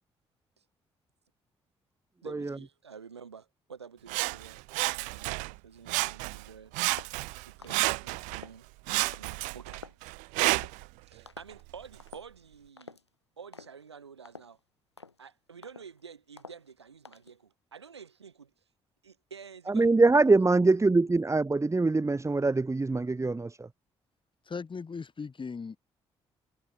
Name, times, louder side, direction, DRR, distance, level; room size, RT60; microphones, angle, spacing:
voice 1, 2.2-4.6 5.0-6.7 7.5-8.7 9.0-9.8 11.1-13.0 13.4-14.6 15.2-18.5 19.0-19.9, right 6 dB, 85° right, 7.7 m, -49 dB
Sawing, 4.1-5.6 5.9-6.5 6.7-8.4 8.9-10.9 11.5-11.6, right 27 dB, 70° right, 0.6 m, -31 dB
sound 1, 6.9-7.2 7.6-7.9 8.3-8.6 9.0-9.3 9.7-10.1 10.5-10.8 11.3-11.6 12.0-12.3 12.8-13.1 13.5-13.8 14.2-14.6 15.0-15.2 15.6-16.0 16.4-16.7 17.0-17.4, left 4 dB, 90° left, 5.9 m, -49 dB
voice 2, 19.7-23.7, right 3 dB, 20° right, 1.6 m, -24 dB
voice 3, 24.5-25.8, left 5 dB, 35° left, 6.8 m, -38 dB
figure-of-eight pair, 40°, 14 cm